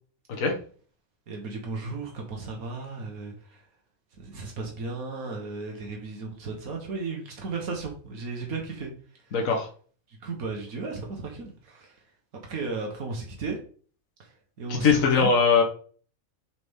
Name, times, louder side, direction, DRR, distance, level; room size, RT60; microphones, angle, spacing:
voice 1, 1.3-3.6 4.2-8.9 9.3-9.4 10.2-12.0 12.5-13.6 14.2-14.3 14.6-15.3, right 4 dB, 90° right, 1 dB, 1.8 m, -35 dB
voice 2, 9.3-9.7 14.7-15.6, left 5 dB, 70° left, 1 dB, 1.6 m, -21 dB
6.9 x 5.1 x 3.7 m, 0.43 s
omnidirectional pair, 1.5 m